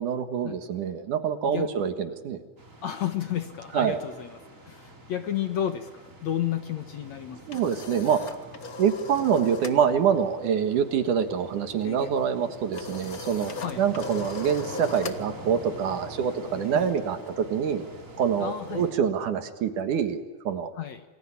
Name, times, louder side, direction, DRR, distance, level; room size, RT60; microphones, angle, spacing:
voice 1, 0.0-2.4 3.7-4.0 7.5-8.3 8.8-13.5 13.8-17.8 18.2-20.7, right 7 dB, 65° right, 9 dB, 2.8 m, -26 dB
sound 1, 2.6-18.9, right 1 dB, 20° right, 3.8 m, -45 dB
voice 2, 2.8-4.4 4.7-7.4 13.6-13.8 16.7-16.9 18.4-18.8 20.8-21.0, left 10 dB, 60° left, 8 dB, 2.1 m, -31 dB
sound 2, 7.1-9.8 10.1-10.4 10.6-17.3, left 4 dB, 85° left, 0.8 m, -40 dB
28.5 x 21.5 x 9.8 m, 1.3 s
omnidirectional pair, 4.2 m